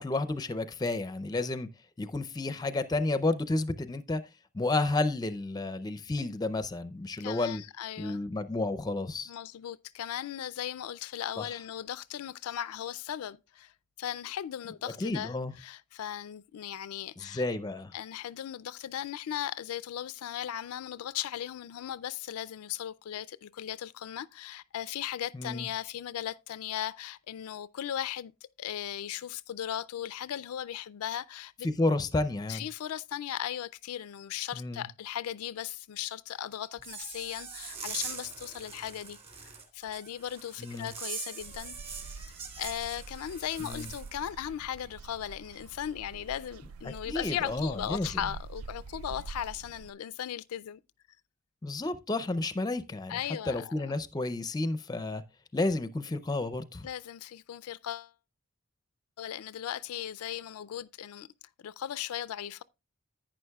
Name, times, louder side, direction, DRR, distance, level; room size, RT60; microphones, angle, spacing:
voice 1, 0.0-1.7 2.0-4.2 4.5-7.6 8.0-9.3 11.4-11.6 15.0-15.5 17.2-17.9 25.3-25.7 31.6-32.7 34.5-34.9 40.6-40.9 43.6-43.9 46.8-48.2 51.6-53.2 53.5-55.2 55.5-56.9, left 2 dB, 20° left, 0.5 m, -31 dB
voice 2, 7.2-8.2 9.3-13.7 14.0-17.4 17.9-28.3 28.6-31.7 32.5-39.2 39.7-41.8 42.0-50.8 53.1-53.9 56.8-58.1 59.2-61.3 61.6-62.6, left 10 dB, 90° left, 0.4 m, -37 dB
sound 1, 36.8-44.1, right 5 dB, 25° right, 1.9 m, -42 dB
sound 2, 41.4-49.9, right 4 dB, 70° right, 0.3 m, -46 dB
11.0 x 9.0 x 2.3 m
head